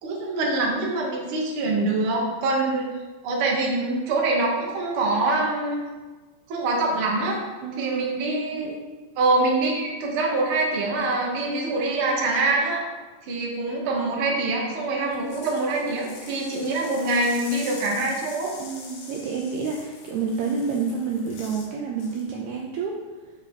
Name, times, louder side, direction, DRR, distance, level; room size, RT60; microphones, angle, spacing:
voice 1, 0.0-2.9 3.2-5.8 6.5-7.4 7.8-8.8 9.2-12.8 13.3-18.6, right 2 dB, 65° right, -1 dB, 1.4 m, -24 dB
voice 2, 2.4-2.9 7.6-8.2 8.5-8.7 9.4-9.5 14.9-15.0 16.5-16.7 18.6-23.0, right 5 dB, 85° right, 0 dB, 1.6 m, -30 dB
sound 1, 15.1-21.7 22.0-22.3, left 4 dB, 65° left, 2.1 m, -44 dB
6.0 x 4.6 x 5.1 m, 1.3 s
omnidirectional pair, 4.0 m